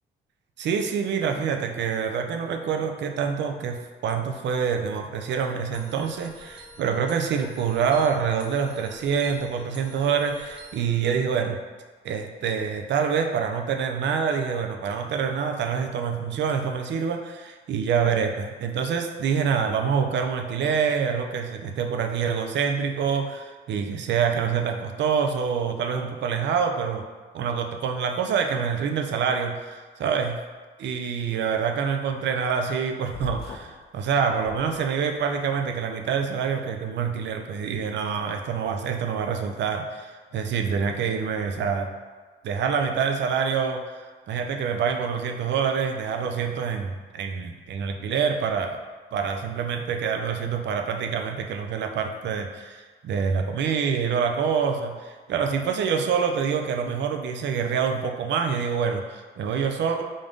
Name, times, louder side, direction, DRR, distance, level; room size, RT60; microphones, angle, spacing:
voice 1, 0.6-11.6 12.0-27.0 27.3-30.4 30.8-41.9 42.4-48.8 49.1-60.0, right 6 dB, 65° right, 5 dB, 0.5 m, -26 dB
sound 1, 5.7-11.0, equal, 5° right, 0.7 m, -47 dB
sound 2, 33.1-33.8 34.4-35.3, left 4 dB, 55° left, 0.4 m, -40 dB
3.8 x 2.5 x 3.4 m, 1.4 s
cardioid pair, 90°, 20 cm